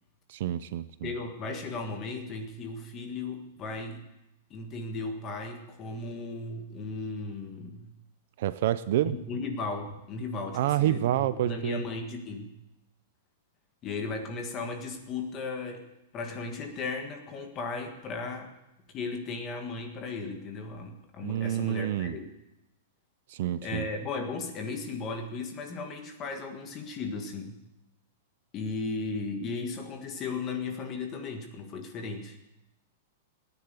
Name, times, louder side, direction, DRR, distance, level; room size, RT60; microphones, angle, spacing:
voice 1, 0.3-1.1 8.4-9.2 10.5-11.8 21.2-22.1 23.3-23.9, right 12 dB, 45° right, 14 dB, 0.5 m, -28 dB
voice 2, 1.0-4.0 4.5-7.9 9.0-12.5 13.8-15.9 16.1-18.5 18.9-22.3 23.6-27.6 28.5-32.4, left 3 dB, 20° left, 4 dB, 1.6 m, -36 dB
16.5 x 9.8 x 8.2 m, 0.93 s
supercardioid pair, 180°, 0 cm